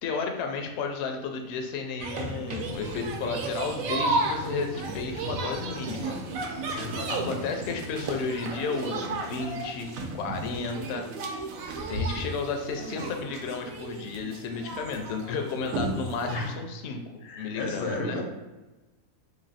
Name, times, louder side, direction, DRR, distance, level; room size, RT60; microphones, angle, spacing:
voice 1, 0.0-6.2 7.1-9.9 10.1-11.1 11.9-17.0 17.4-18.2, left 4 dB, 65° left, 4 dB, 0.7 m, -33 dB
sound 1, 2.0-16.5, right 2 dB, 75° right, 1.0 m, -33 dB
sound 2, 2.5-9.9, equal, 50° right, 0.5 m, -43 dB
voice 2, 6.7-7.4 16.3-16.5 17.2-18.2, left 2 dB, 85° left, 1 dB, 1.3 m, -33 dB
3.0 x 2.6 x 4.0 m, 1.1 s
omnidirectional pair, 1.5 m